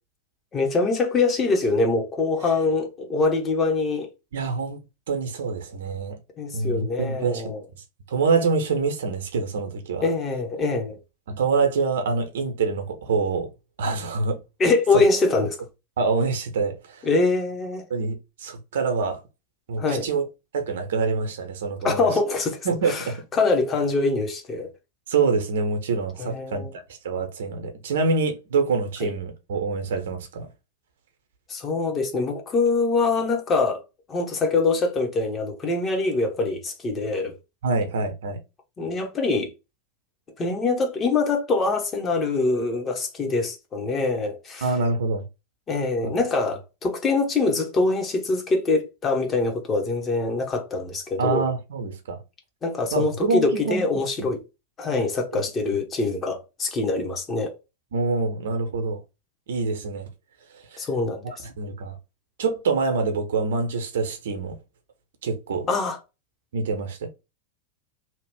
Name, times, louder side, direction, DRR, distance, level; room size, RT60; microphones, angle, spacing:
voice 1, 0.5-4.1 6.4-7.6 10.0-11.0 14.6-15.6 17.0-17.9 19.8-20.1 21.8-24.7 26.2-26.7 29.0-29.1 31.5-33.8 34.1-37.3 38.8-39.5 40.4-44.7 45.7-51.5 52.6-54.4 54.8-57.5 60.8-61.4 65.7-66.0, left 3 dB, 25° left, 1.0 m, -24 dB
voice 2, 4.3-4.8 5.1-6.2 6.5-7.5 8.1-10.1 11.3-13.5 13.8-14.4 16.0-17.0 17.9-19.2 19.7-20.3 20.5-22.1 22.6-23.2 25.1-30.5 37.6-38.4 44.6-45.2 46.0-46.1 51.2-52.2 52.9-53.8 54.2-54.3 55.3-55.4 57.9-59.0 59.5-60.1 60.7-60.8 61.2-62.0 62.4-64.6 65.2-65.7 66.5-67.1, right 4 dB, 60° right, 0.9 m, -26 dB
2.9 x 2.4 x 3.4 m
figure-of-eight pair, 90°, 0 cm